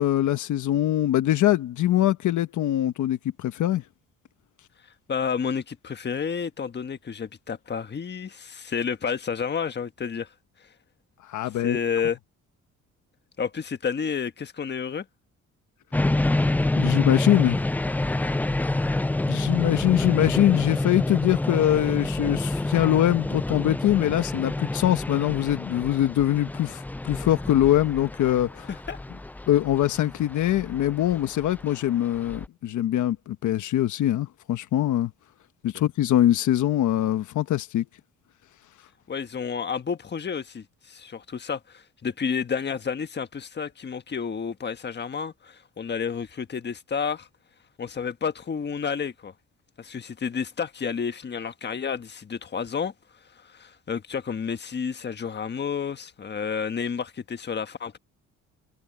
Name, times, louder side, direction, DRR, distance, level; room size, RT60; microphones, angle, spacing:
voice 1, 0.0-3.8 11.3-11.8 16.8-17.6 19.3-28.7 29.5-35.1 35.6-37.8, left 13 dB, 75° left, 1.3 m, -23 dB
voice 2, 5.1-10.3 10.6-10.7 11.5-12.2 13.4-15.0 28.7-29.0 39.1-47.3 47.8-49.3 49.8-52.9 53.2-58.0, left 6 dB, 35° left, 1.4 m, -30 dB
sound 1, 15.9-32.5, left 2 dB, 5° left, 0.3 m, -28 dB
cardioid pair, 90°, 30 cm